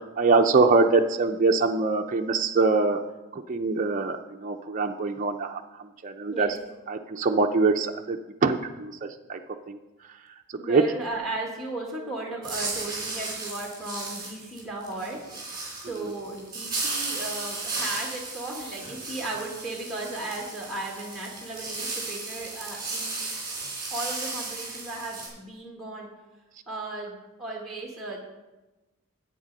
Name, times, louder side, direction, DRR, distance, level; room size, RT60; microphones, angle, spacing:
voice 1, 0.0-3.0 3.3-5.6 6.0-6.5 6.9-9.4 9.7-9.8 10.6-10.8, right 3 dB, 35° right, 3 dB, 0.4 m, -23 dB
voice 2, 10.6-15.2 15.8-23.2 23.9-26.1 26.7-28.2, right 2 dB, ahead, -1 dB, 1.6 m, -35 dB
sound 1, 12.4-25.3, right 3 dB, 20° right, 3.9 m, -35 dB
10.0 x 8.3 x 5.3 m, 1.1 s
head